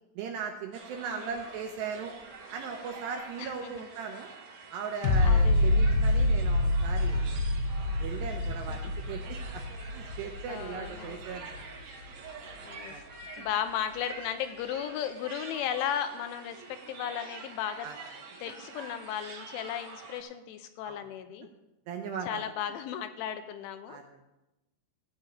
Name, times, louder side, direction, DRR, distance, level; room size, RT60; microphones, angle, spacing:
voice 1, 0.2-2.1 2.5-4.3 4.7-7.5 8.0-9.6 9.9-11.8 12.9-13.0 17.8-18.0 20.8-21.1 21.9-22.4 23.9-24.3, right 6 dB, 80° right, 4 dB, 2.6 m, -38 dB
sound 1, 0.7-20.2, right 4 dB, 55° right, 2.0 m, -47 dB
voice 2, 3.4-3.7 5.2-5.8 8.7-8.8 10.5-11.2 12.6-12.9 13.4-17.9 18.4-21.5 22.3-24.0, left 9 dB, 80° left, 9 dB, 3.0 m, -35 dB
sound 2, 5.0-12.1 12.5-12.6, left 1 dB, 60° left, 2.8 m, -27 dB
15.5 x 5.3 x 8.8 m, 0.96 s
omnidirectional pair, 5.8 m